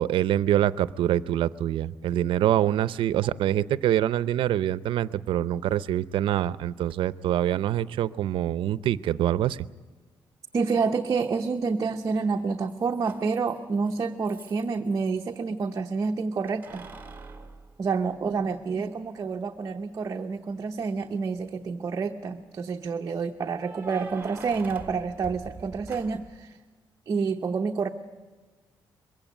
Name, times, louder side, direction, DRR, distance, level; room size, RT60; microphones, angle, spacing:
voice 1, 0.0-9.6, right 11 dB, 90° right, 17 dB, 0.6 m, -25 dB
Keys jangling, 6.9-7.0 8.8-8.9 11.2-11.7 12.0-15.2 16.5-18.6 19.1-19.2 21.0-21.5 23.5-26.4, right 3 dB, 20° right, 1.7 m, -45 dB
voice 2, 10.5-16.9 17.8-26.6 27.1-27.9, right 5 dB, 40° right, 4 dB, 0.8 m, -28 dB
22.5 x 16.0 x 9.4 m, 1.4 s
cardioid pair, 150°, 9 cm